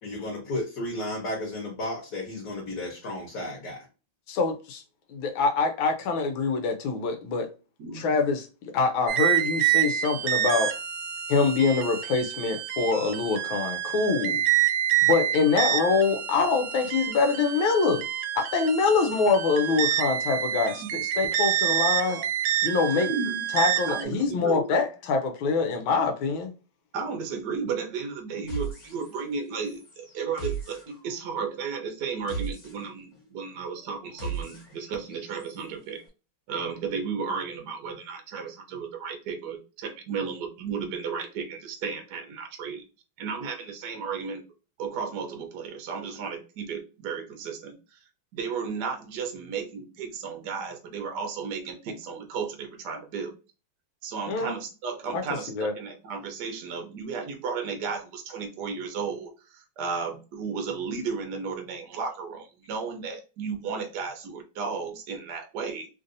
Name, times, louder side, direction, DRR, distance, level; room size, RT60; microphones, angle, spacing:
voice 1, 0.0-3.8 9.9-10.0, left 1 dB, 60° left, 1.3 m, -33 dB
voice 2, 4.3-4.8 5.1-7.5 7.9-8.5 8.7-10.7 11.3-14.4 15.1-18.1 18.3-22.2 22.6-23.1 23.5-26.5 54.3-54.5 55.1-55.2 55.5-55.7, left 4 dB, 85° left, 1.4 m, -25 dB
voice 3, 7.8-8.1 20.8-20.9 22.1-22.2 23.0-23.5 23.9-24.7 26.9-36.0 36.5-42.8 43.2-44.4 44.8-48.0 48.3-53.3 54.0-65.9, right 5 dB, 65° right, 1.2 m, -34 dB
sound 1, 9.1-24.0, right 12 dB, 85° right, 1.4 m, -27 dB
sound 2, 28.5-35.7, right 5 dB, 40° left, 1.4 m, -38 dB
3.4 x 2.6 x 2.5 m
omnidirectional pair, 2.2 m